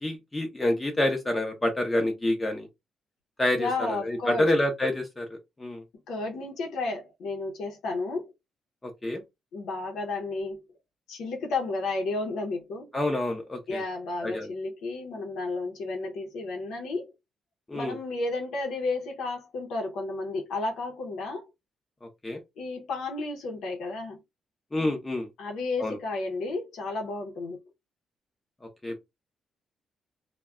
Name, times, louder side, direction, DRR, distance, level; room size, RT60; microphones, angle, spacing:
voice 1, 0.0-2.7 3.4-5.8 8.8-9.2 12.9-13.8 14.2-14.5 17.7-17.9 22.2-22.4 24.7-25.3 25.8-26.0 28.8-29.0, left 1 dB, 15° left, 0.6 m, -28 dB
voice 2, 3.6-4.5 6.1-8.3 9.5-10.6 11.1-12.9 13.7-17.1 17.7-21.5 22.6-24.2 25.4-27.6, left 3 dB, 85° left, 0.6 m, -32 dB
2.3 x 2.1 x 3.5 m
cardioid pair, 130°, 0 cm